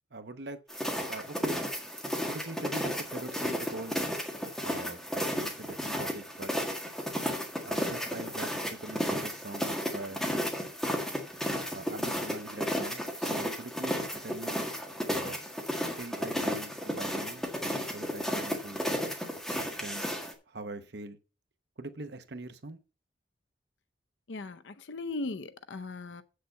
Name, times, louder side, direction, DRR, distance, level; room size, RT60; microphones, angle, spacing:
voice 1, 0.1-0.6 1.1-1.6 2.3-4.1 4.6-6.5 7.6-10.2 11.7-14.6 15.1-15.4 16.0-18.9 19.6-20.1 20.5-21.2 21.8-22.8, right 2 dB, 60° right, 0.8 m, -42 dB
sound 1, 0.7-20.3, equal, ahead, 1.8 m, -33 dB
voice 2, 24.3-26.2, left 3 dB, 80° left, 0.6 m, -38 dB
8.0 x 6.6 x 5.6 m
head